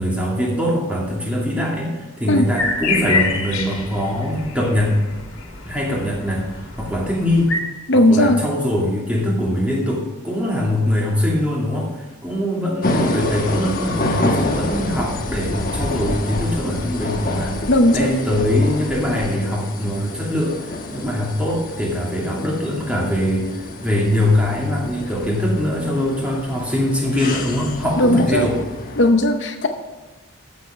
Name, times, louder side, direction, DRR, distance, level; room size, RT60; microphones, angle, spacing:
voice 1, 0.0-5.0 5.6-6.4 6.8-7.5 7.9-17.6 17.9-28.6, left 1 dB, 5° right, -3 dB, 2.6 m, -22 dB
sound 1, 2.6-7.6, left 4 dB, 80° left, 2.3 m, -27 dB
voice 2, 7.9-8.4 17.7-18.2 28.0-28.5 29.0-29.7, left 1 dB, 55° left, 5 dB, 0.8 m, -16 dB
sound 2, 12.8-29.1, left 1 dB, 40° left, 1.2 m, -28 dB
14.0 x 7.7 x 5.1 m, 1.2 s
head